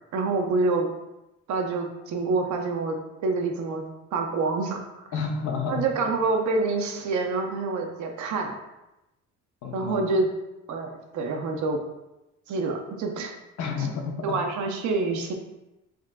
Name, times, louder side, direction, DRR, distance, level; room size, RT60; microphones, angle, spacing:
voice 1, 0.1-0.9 1.5-5.1 5.7-8.6 9.7-10.3 10.7-11.8 12.5-13.3 14.2-15.3, right 3 dB, 70° right, 3 dB, 0.7 m, -27 dB
voice 2, 5.1-5.8 9.6-10.1 13.6-14.4, left 5 dB, 80° left, 2 dB, 0.7 m, -30 dB
3.6 x 3.6 x 2.2 m, 0.95 s
cardioid pair, 90°, 30 cm